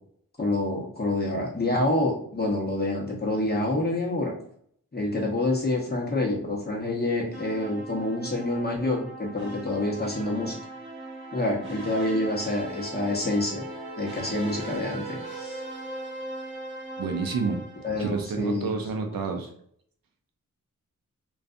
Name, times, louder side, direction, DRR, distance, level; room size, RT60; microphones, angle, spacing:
voice 1, 0.4-4.3 4.9-10.6 11.3-13.6 14.0-15.6 17.8-18.7 19.3-19.4, left 1 dB, 30° left, -2 dB, 0.9 m, -27 dB
sound 1, 7.3-18.6, right 1 dB, 30° right, 1.1 m, -39 dB
voice 2, 17.0-17.6 18.0-19.5, right 4 dB, 80° right, 3 dB, 0.5 m, -29 dB
2.5 x 2.3 x 2.5 m, 0.62 s
cardioid pair, 45°, 34 cm